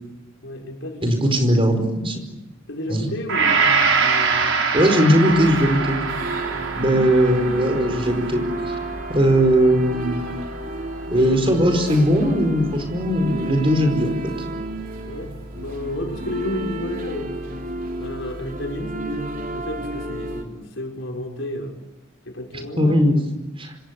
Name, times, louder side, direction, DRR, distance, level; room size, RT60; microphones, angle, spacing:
voice 1, 0.4-1.4 2.7-4.5 6.7-7.0 9.1-9.4 11.0-11.3 15.0-17.4 17.9-21.8 22.2-23.3, left 1 dB, 65° left, 2 dB, 5.8 m, -32 dB
voice 2, 1.0-2.2 2.9-3.1 4.7-6.0 6.8-8.8 9.1-10.2 11.1-14.3 22.5-23.2 23.6-23.7, equal, 25° right, 6 dB, 4.9 m, -19 dB
Gong, 3.3-11.6 12.1-12.2, right 5 dB, 75° right, 5.1 m, -24 dB
sound 1, 5.3-20.4, right 1 dB, 45° right, 3.5 m, -32 dB
26.0 x 26.0 x 8.4 m, 1.0 s
head